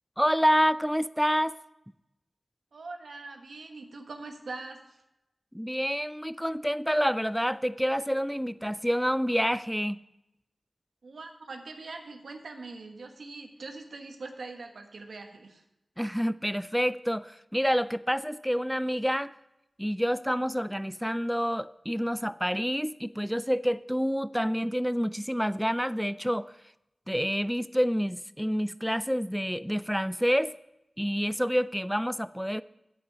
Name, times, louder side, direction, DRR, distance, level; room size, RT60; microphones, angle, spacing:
voice 1, 0.2-1.5 5.5-10.0 16.0-19.3 19.8-26.5 27.1-30.5 31.0-32.6, equal, ahead, 15 dB, 0.3 m, -28 dB
voice 2, 2.7-5.0 11.0-15.6, right 3 dB, 85° right, 4 dB, 1.3 m, -42 dB
9.4 x 8.5 x 5.5 m, 0.88 s
wide cardioid pair, 65°, 0 cm